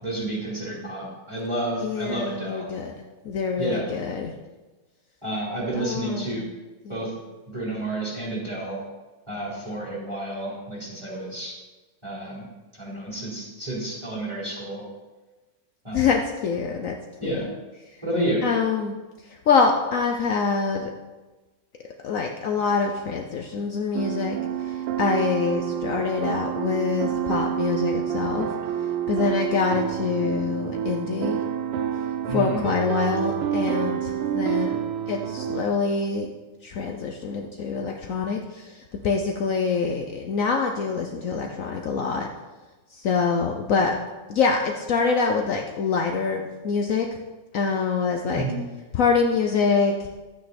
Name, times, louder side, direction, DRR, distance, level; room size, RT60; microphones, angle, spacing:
voice 1, 0.0-2.7 3.6-3.9 5.2-6.4 6.9-7.1 7.5-8.8 9.3-11.5 12.0-12.4 12.8-14.8 15.8-16.0 17.2-17.5 18.0-18.4 32.2-32.6 48.3-48.6, right 1 dB, 10° right, -6 dB, 3.7 m, -30 dB
voice 2, 1.8-2.9 3.2-4.3 5.7-6.5 6.8-7.2 15.9-17.0 17.2-17.5 18.4-19.0 19.2-20.9 22.0-28.5 29.1-31.4 32.3-34.7 35.1-36.3 36.6-42.3 42.9-44.0 44.3-47.1 47.5-48.5 48.9-50.1, left 5 dB, 80° left, 2 dB, 0.7 m, -25 dB
sound 1, 23.9-35.7, right 9 dB, 85° right, 1.7 m, -28 dB
11.5 x 8.9 x 4.3 m, 1.2 s
omnidirectional pair, 2.4 m